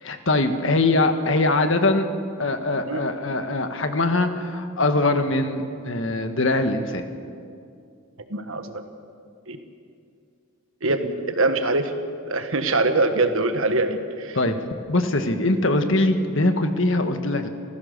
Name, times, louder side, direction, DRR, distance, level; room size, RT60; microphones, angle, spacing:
voice 1, 0.0-2.1 2.4-7.1 14.3-14.5 14.9-17.5, left 2 dB, 60° left, 7 dB, 1.5 m, -22 dB
voice 2, 8.3-8.7 9.5-9.6 10.8-11.9 12.3-14.4, right 2 dB, 65° right, 7 dB, 1.5 m, -23 dB
28.0 x 15.5 x 6.8 m, 2.4 s
head